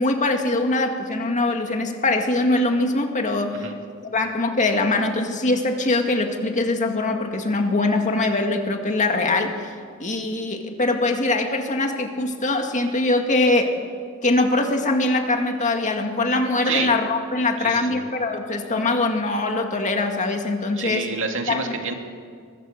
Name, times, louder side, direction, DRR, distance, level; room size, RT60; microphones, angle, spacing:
voice 1, 0.0-3.7 4.1-9.7 10.0-13.8 14.2-21.1 21.5-21.6, left 2 dB, 35° left, 4 dB, 2.1 m, -22 dB
voice 2, 17.6-18.0 20.8-21.9, right 5 dB, 65° right, 3 dB, 2.6 m, -28 dB
23.5 x 21.5 x 6.7 m, 2.1 s
head